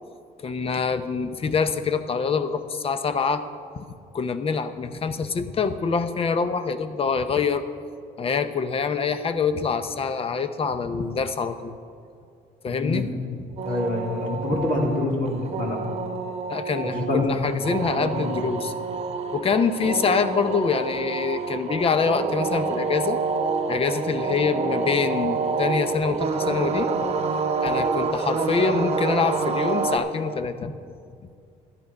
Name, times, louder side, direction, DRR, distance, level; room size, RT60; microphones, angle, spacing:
voice 1, 0.4-3.5 3.8-7.6 8.2-11.8 12.6-13.1 13.4-13.5 16.5-18.7 19.3-23.2 23.7-27.0 27.6-30.8 31.2-31.3, left 5 dB, 35° left, 11 dB, 0.7 m, -25 dB
voice 2, 12.7-13.2 13.6-15.8 16.9-17.3 18.0-18.4, left 2 dB, 55° left, 0 dB, 2.6 m, -26 dB
sound 1, 13.6-30.0, right 4 dB, 40° right, 0.9 m, -27 dB
12.5 x 10.0 x 5.3 m, 2.3 s
cardioid pair, 110°, 17 cm